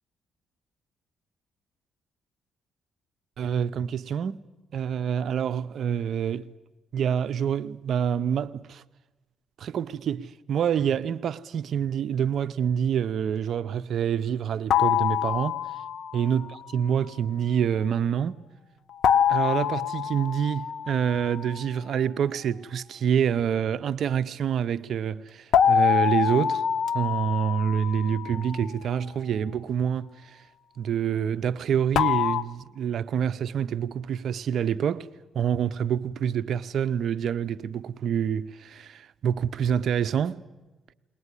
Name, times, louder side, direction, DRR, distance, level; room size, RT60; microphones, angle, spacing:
voice 1, 3.4-4.4 4.7-6.5 6.9-8.8 9.6-15.6 16.1-18.4 19.3-26.7 26.9-30.4 30.8-35.1 35.3-40.4, right 8 dB, 65° right, 0.7 m, -27 dB
sound 1, 14.7-16.2 19.0-21.5 25.5-28.7 32.0-32.4, left 9 dB, 65° left, 0.7 m, -25 dB
21.5 x 19.0 x 9.8 m
cardioid pair, 90°, 0 cm